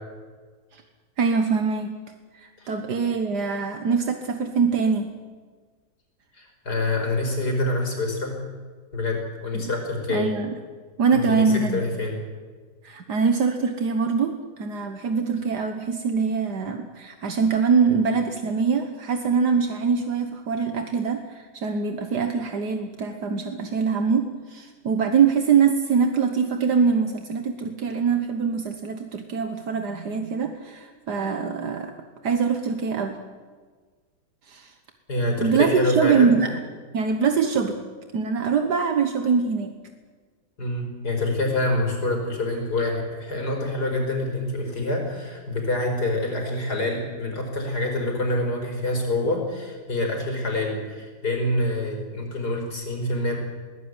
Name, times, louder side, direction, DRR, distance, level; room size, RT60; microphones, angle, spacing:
voice 1, 1.2-2.0 2.3-5.1 9.5-9.7 10.1-10.5 11.0-11.8 12.8-31.9 32.2-33.2 34.5-34.7 35.4-36.6 36.9-37.8 38.1-39.7, right 5 dB, 75° right, 6 dB, 1.9 m, -23 dB
voice 2, 6.3-8.4 8.9-10.3 11.1-12.2 35.1-36.4 40.6-53.4, left 2 dB, 70° left, 2 dB, 5.8 m, -26 dB
21.5 x 17.5 x 9.7 m, 1.5 s
omnidirectional pair, 1.8 m